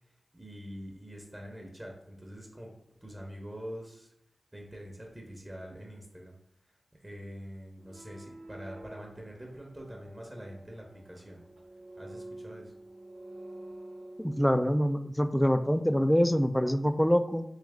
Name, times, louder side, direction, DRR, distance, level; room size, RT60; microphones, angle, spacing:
voice 1, 0.3-2.7 3.0-4.1 4.5-6.3 7.0-11.4 12.0-12.7, equal, 25° right, 0 dB, 0.9 m, -45 dB
sound 1, 7.8-14.7, right 1 dB, 80° right, 0.7 m, -48 dB
voice 2, 14.2-17.4, equal, 10° left, 10 dB, 0.3 m, -25 dB
3.3 x 3.0 x 3.6 m, 0.79 s
cardioid pair, 40°, 0 cm